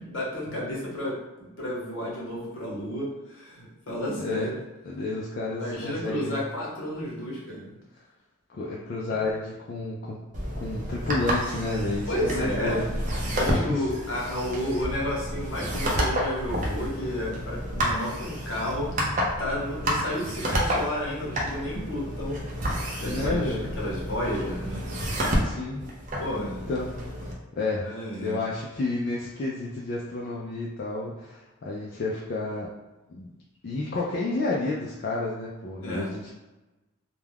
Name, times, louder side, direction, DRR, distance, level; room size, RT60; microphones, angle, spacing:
voice 1, 0.0-4.6 5.6-7.7 12.1-13.0 13.2-22.4 22.6-22.7 23.0-24.8 26.2-26.6 27.8-28.4 35.8-36.1, left 1 dB, 65° left, -4 dB, 0.9 m, -32 dB
voice 2, 4.2-4.5 4.8-6.4 8.5-10.2 10.6-12.8 13.5-13.9 23.0-23.7 25.4-25.8 26.7-27.0 27.6-27.9 28.2-32.7 33.1-33.3 33.6-36.3, left 2 dB, 45° left, -4 dB, 0.3 m, -30 dB
sound 1, 10.3-27.3, equal, 35° right, 0.5 m, -30 dB
2.3 x 2.2 x 3.3 m, 1.1 s
head